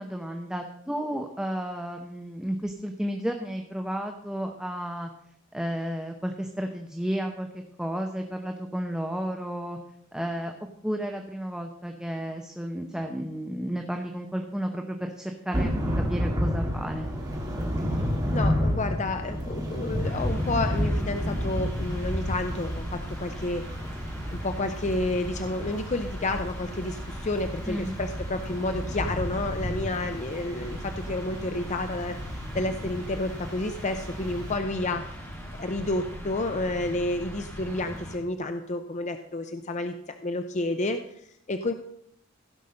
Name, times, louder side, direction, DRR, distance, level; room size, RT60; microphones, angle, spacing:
voice 1, 0.0-5.1 5.5-9.8 10.1-10.5 10.8-17.1 27.7-28.0, equal, 5° right, 3 dB, 0.8 m, -32 dB
Thunder / Rain, 15.5-34.6, equal, 20° right, 2.4 m, -31 dB
voice 2, 18.3-23.6 24.4-35.0 35.6-41.7, left 2 dB, 35° left, 7 dB, 0.6 m, -30 dB
sound 1, 20.0-38.2, equal, 10° left, 2.4 m, -40 dB
16.0 x 5.5 x 6.4 m, 0.73 s
head